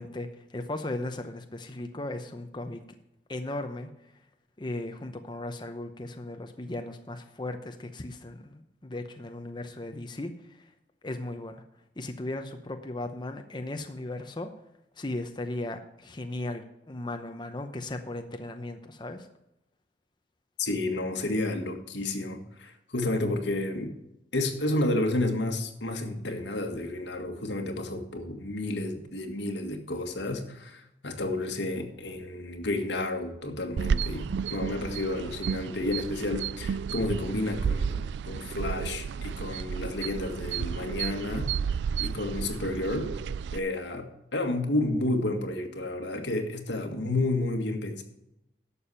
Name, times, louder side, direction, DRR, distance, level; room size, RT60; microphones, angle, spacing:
voice 1, 0.0-2.8 3.3-3.9 4.6-10.7 11.0-11.6 12.0-14.5 15.0-19.3, left 2 dB, 25° left, 6 dB, 0.8 m, -37 dB
voice 2, 20.6-23.9 24.3-41.5 42.0-43.1 43.5-48.0, left 2 dB, 90° left, 4 dB, 1.8 m, -31 dB
sound 1, 33.8-43.6, right 6 dB, 80° right, 0.3 m, -32 dB
11.5 x 7.1 x 5.7 m, 0.84 s
head